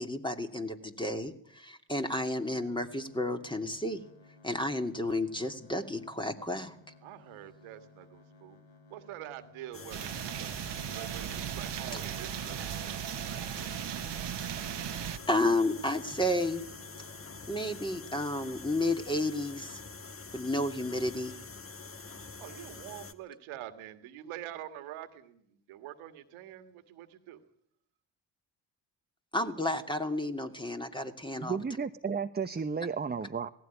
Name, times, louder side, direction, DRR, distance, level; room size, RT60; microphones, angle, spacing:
voice 1, 0.0-4.0 4.4-6.7 15.3-16.6 17.5-19.8 20.3-21.3 29.3-31.6, left 1 dB, 10° left, 5 dB, 2.7 m, -31 dB
sound 1, 2.4-18.4, left 3 dB, 85° left, 3.3 m, -58 dB
voice 2, 7.0-8.6 8.9-10.1 10.4-13.0 13.2-13.7 22.4-27.4, right 12 dB, 75° right, 10 dB, 1.9 m, -46 dB
sound 2, 9.7-23.1, left 4 dB, 25° left, 1.6 m, -46 dB
sound 3, 9.9-15.2, right 11 dB, 55° right, 1.3 m, -37 dB
voice 3, 31.4-33.5, right 5 dB, 20° right, 8 dB, 0.9 m, -33 dB
18.0 x 15.5 x 9.6 m, 0.73 s
hypercardioid pair, 50°, 49 cm